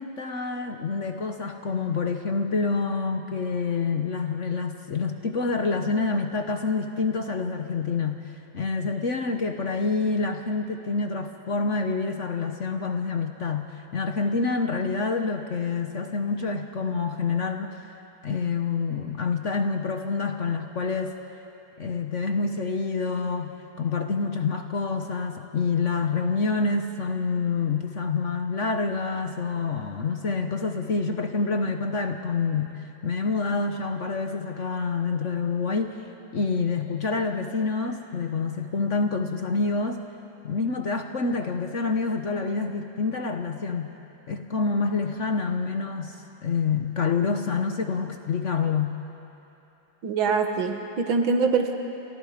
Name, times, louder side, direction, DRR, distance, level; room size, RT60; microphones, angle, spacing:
voice 1, 0.0-8.2 8.5-17.8 18.2-21.2 21.8-32.7 33.0-36.0 36.3-40.0 40.4-43.9 44.3-49.0, left 4 dB, 45° left, 5 dB, 1.1 m, -27 dB
voice 2, 50.0-51.7, right 4 dB, 80° right, 5 dB, 2.3 m, -24 dB
29.0 x 26.5 x 5.1 m, 2.9 s
omnidirectional pair, 2.1 m